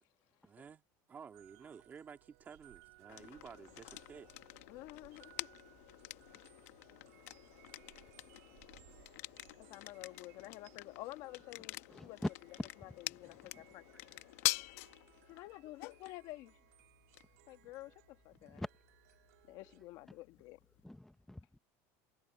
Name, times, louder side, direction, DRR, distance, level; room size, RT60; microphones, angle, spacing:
voice 1, 0.4-0.8 1.1-4.3, right 6 dB, 20° right, 2.5 m, -53 dB
sound 1, 1.3-19.8, right 22 dB, 85° right, 3.5 m, -66 dB
Wind, 2.3-10.1, right 22 dB, 55° right, 3.8 m, -68 dB
sound 2, 3.1-20.8, left 20 dB, 75° left, 1.2 m, -46 dB
voice 2, 4.7-5.5 9.6-12.2 12.8-13.9 15.3-16.6 17.5-18.6 19.5-20.6, left 18 dB, 55° left, 1.4 m, -50 dB
voice 3, 11.9-12.3 12.6-13.0 13.2-13.5 18.5-18.7 19.8-19.9 20.8-21.6, left 1 dB, 5° left, 0.9 m, -43 dB
cardioid pair, 155°, 8 cm